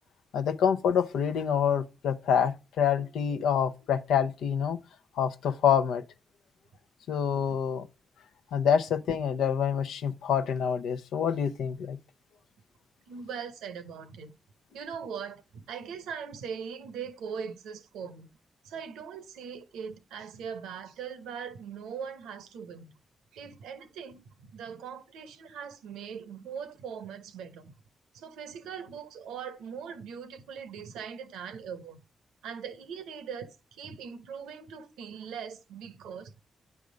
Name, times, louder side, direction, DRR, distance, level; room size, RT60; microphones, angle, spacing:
voice 1, 0.3-4.8 5.2-6.0 7.1-7.9 8.5-12.0, left 8 dB, 80° left, 0.6 m, -26 dB
voice 2, 13.1-14.3 14.7-18.3 18.6-22.9 23.3-27.7 28.1-32.0 32.4-36.4, right 7 dB, 85° right, 0.8 m, -41 dB
9.5 x 3.6 x 6.3 m
supercardioid pair, 45°, 0 cm